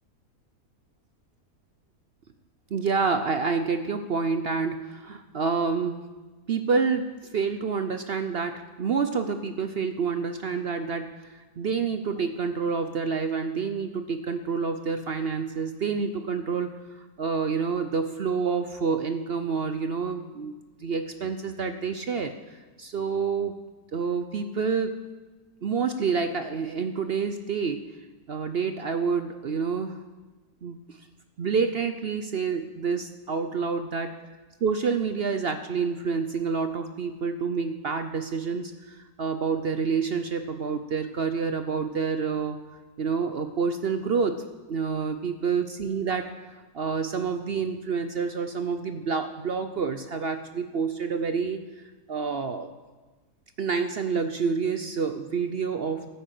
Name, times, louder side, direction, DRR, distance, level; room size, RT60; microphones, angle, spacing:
voice 1, 2.7-6.1 6.5-7.1 7.3-23.5 23.9-25.0 25.6-27.8 28.3-29.9 30.6-31.0 31.4-34.1 34.6-42.6 43.0-44.4 44.7-46.3 46.7-52.7 53.6-56.1, right 5 dB, 55° right, 8 dB, 0.7 m, -28 dB
12.5 x 10.0 x 7.6 m, 1.2 s
omnidirectional pair, 1.7 m